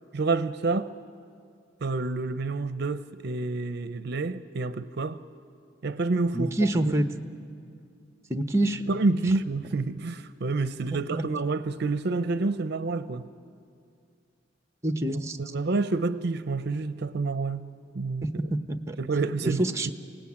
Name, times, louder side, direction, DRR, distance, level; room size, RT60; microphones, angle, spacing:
voice 1, 0.1-0.9 1.8-5.2 5.8-6.5 6.8-6.9 8.9-13.3 15.1-17.7 17.9-18.3 19.0-19.9, right 3 dB, 60° right, 0.6 m, -28 dB
voice 2, 6.3-7.1 8.3-8.8 11.1-11.2 14.8-15.4 18.2-19.0 19.4-19.9, right 1 dB, 15° right, 0.9 m, -26 dB
27.5 x 18.0 x 8.6 m
head